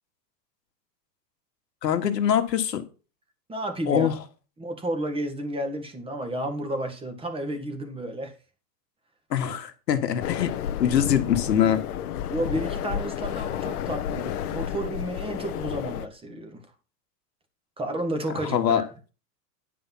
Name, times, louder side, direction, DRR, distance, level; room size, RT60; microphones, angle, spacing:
voice 1, 1.8-2.8 3.9-4.2 9.3-10.5 10.8-11.8 18.3-18.8, left 9 dB, 90° left, 1.8 m, -23 dB
voice 2, 3.5-4.1 4.6-8.3 12.3-16.6 17.8-18.9, right 1 dB, 10° right, 1.8 m, -31 dB
sound 1, 10.2-16.1, left 10 dB, 65° left, 1.2 m, -31 dB
10.5 x 5.2 x 5.9 m
hypercardioid pair, 135°, 48 cm